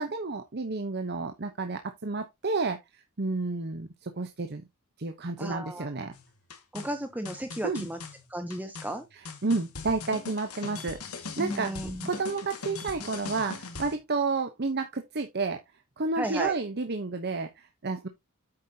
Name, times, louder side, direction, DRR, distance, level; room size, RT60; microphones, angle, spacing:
voice 1, 0.0-2.8 3.2-4.6 5.0-6.1 7.6-7.9 9.1-11.7 12.1-15.6 16.0-18.1, right 3 dB, 50° right, 0.9 m, -31 dB
voice 2, 5.4-5.9 6.7-8.0 8.3-9.0 11.4-12.1 16.2-16.5, right 1 dB, 10° right, 0.8 m, -34 dB
sound 1, 6.1-14.0, left 4 dB, 85° left, 2.0 m, -41 dB
8.9 x 7.2 x 2.8 m
head